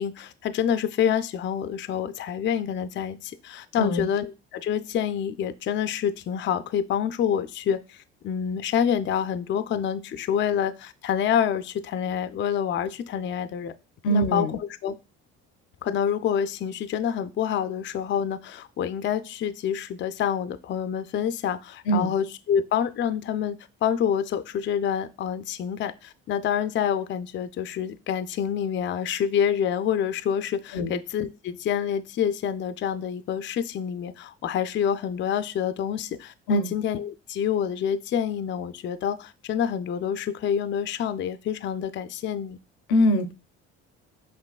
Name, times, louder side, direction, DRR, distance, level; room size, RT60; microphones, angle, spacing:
voice 1, 0.0-13.7 14.1-14.9 15.8-42.6, left 8 dB, 40° left, 11 dB, 0.4 m, -27 dB
voice 2, 14.0-14.5 21.9-22.1 30.7-31.0 36.5-36.7 42.9-43.3, equal, 85° left, 11 dB, 0.5 m, -23 dB
5.9 x 2.6 x 2.3 m, 0.30 s
supercardioid pair, 70°, 30 cm